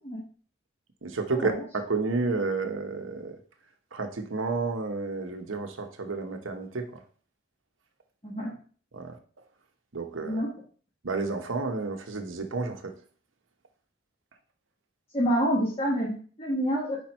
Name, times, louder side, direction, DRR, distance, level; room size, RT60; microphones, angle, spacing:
voice 1, 1.0-3.4 3.9-7.0 8.9-9.2 9.9-10.4 11.0-12.9, right 3 dB, 85° right, 6 dB, 0.9 m, -31 dB
voice 2, 15.1-17.0, equal, 30° left, -6 dB, 1.4 m, -27 dB
5.1 x 4.3 x 4.4 m, 0.43 s
head